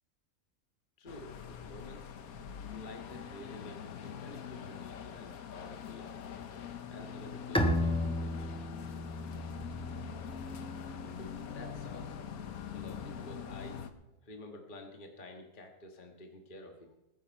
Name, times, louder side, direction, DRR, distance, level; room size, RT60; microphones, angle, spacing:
voice 1, 1.0-2.1 2.7-6.2 6.9-8.5 10.9-12.2 12.7-13.8 14.2-17.0, left 1 dB, 35° left, 3 dB, 1.6 m, -50 dB
sound 1, 1.1-13.9, left 8 dB, 85° left, 1.4 m, -44 dB
Bowed string instrument, 7.5-11.0, left 1 dB, 5° left, 0.9 m, -34 dB
20.0 x 10.0 x 4.5 m, 1.0 s
omnidirectional pair, 1.5 m